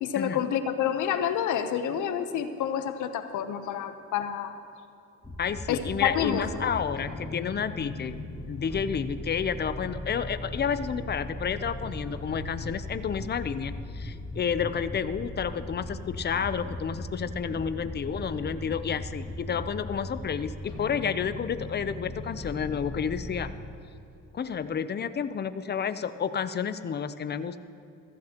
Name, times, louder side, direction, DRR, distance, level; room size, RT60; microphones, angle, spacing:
voice 1, 0.0-4.6 5.7-6.4, left 9 dB, 80° left, 9 dB, 0.9 m, -28 dB
sound 1, 5.2-23.5, left 1 dB, 15° left, 2.4 m, -38 dB
voice 2, 5.4-23.5 24.3-27.6, left 7 dB, 35° left, 12 dB, 0.6 m, -30 dB
15.5 x 14.5 x 2.9 m, 2.7 s
cardioid pair, 90°, 30 cm